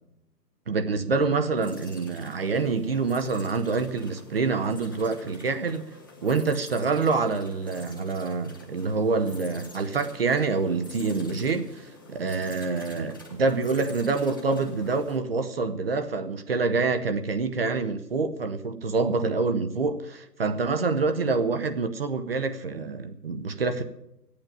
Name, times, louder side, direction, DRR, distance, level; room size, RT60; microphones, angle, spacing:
voice 1, 0.7-5.8 6.2-11.8 12.1-23.8, right 4 dB, 35° right, 0.8 m, -26 dB
sound 1, 1.6-15.2, left 2 dB, 15° left, 0.6 m, -48 dB
13.0 x 8.8 x 8.8 m
hypercardioid pair, 165°, 49 cm